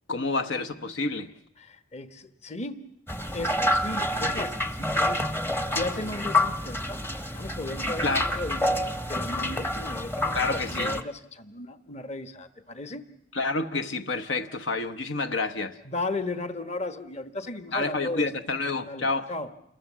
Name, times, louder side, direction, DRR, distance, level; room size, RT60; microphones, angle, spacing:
voice 1, 0.1-1.3 8.0-8.2 10.3-10.9 13.3-15.8 17.7-19.3, left 3 dB, 65° left, 1.0 m, -29 dB
voice 2, 1.6-2.9 3.3-5.2 5.6-7.0 7.3-13.1 15.8-18.3 18.9-19.5, left 2 dB, 30° left, 1.2 m, -35 dB
sound 1, 3.1-11.0, left 1 dB, 10° left, 0.9 m, -28 dB
28.5 x 22.0 x 7.4 m
head